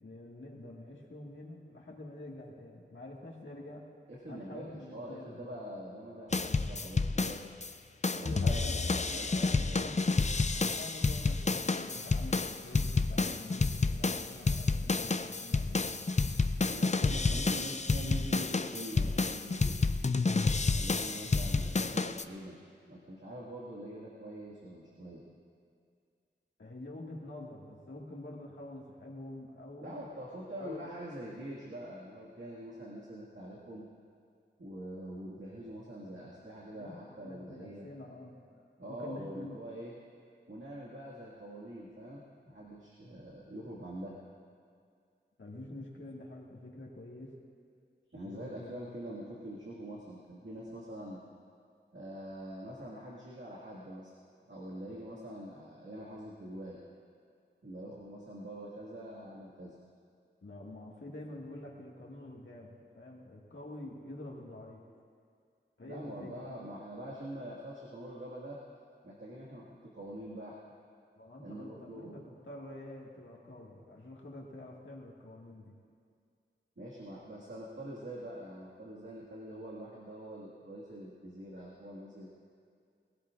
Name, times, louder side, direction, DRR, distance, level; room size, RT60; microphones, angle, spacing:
voice 1, 0.0-3.9 4.3-5.4 8.2-10.1 10.6-16.0 21.1-21.3 26.6-30.0 30.6-30.8 36.7-38.5 38.9-39.6 45.4-47.4 48.2-48.8 60.4-64.8 65.8-66.3 71.1-75.7, left 1 dB, 85° left, -3 dB, 1.8 m, -47 dB
voice 2, 4.1-7.5 8.1-9.8 16.7-20.0 20.7-22.6 22.9-25.2 29.8-33.9 34.6-37.9 38.8-39.9 40.5-44.2 48.1-51.2 51.9-54.1 54.5-56.8 57.6-59.8 65.8-68.6 69.0-70.6 71.4-72.3 76.8-82.3, right 1 dB, 75° right, -6 dB, 1.9 m, -44 dB
sound 1, 6.3-7.7 8.0-22.2, left 3 dB, 35° left, 0.5 m, -30 dB
22.0 x 17.0 x 2.5 m, 2.3 s
wide cardioid pair, 45°, 19 cm